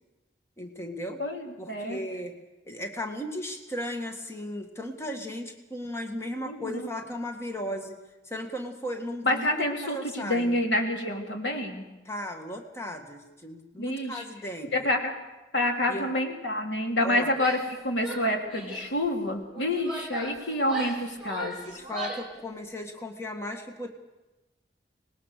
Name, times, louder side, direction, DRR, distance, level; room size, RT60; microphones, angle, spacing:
voice 1, 0.6-1.2 1.6-2.4 2.6-7.9 8.2-10.6 12.0-14.9 15.9-16.1 17.0-17.3 21.6-23.9, equal, 15° left, 3 dB, 1.9 m, -36 dB
voice 2, 1.2-2.0 6.4-6.9 9.2-11.9 13.8-14.2 14.7-15.1 15.5-17.6 17.8-21.6, left 1 dB, 85° left, 2 dB, 3.5 m, -28 dB
Female speech woman speaking / Yell, 17.3-17.8 18.0-18.9 19.5-22.4, right 2 dB, 5° right, 3.9 m, -37 dB
25.0 x 20.0 x 6.7 m, 1.1 s
head